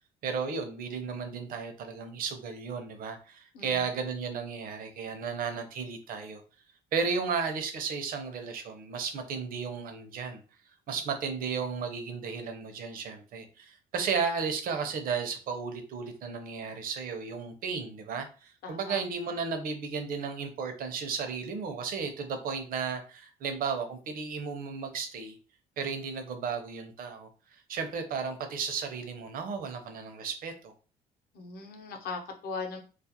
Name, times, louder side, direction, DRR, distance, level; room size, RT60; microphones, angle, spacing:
voice 1, 0.2-6.4 6.9-10.4 10.9-25.4 25.8-30.7, right 5 dB, 60° right, 6 dB, 0.6 m, -34 dB
voice 2, 18.6-19.0 31.3-32.8, left 4 dB, 65° left, 3 dB, 0.7 m, -38 dB
2.4 x 2.0 x 2.7 m, 0.36 s
cardioid pair, 110°, 17 cm